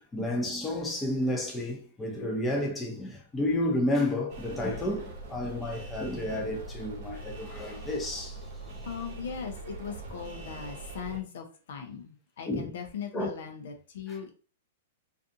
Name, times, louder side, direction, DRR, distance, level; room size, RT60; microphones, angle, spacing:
voice 1, 0.0-8.4 8.7-8.8 12.5-12.7 13.1-13.3, left 1 dB, 15° left, 0.7 m, -31 dB
sound 1, 4.3-11.2, right 2 dB, 50° right, 0.8 m, -42 dB
voice 2, 8.8-14.3, left 7 dB, 70° left, 0.6 m, -39 dB
2.5 x 2.4 x 2.6 m
hypercardioid pair, 125°, 0 cm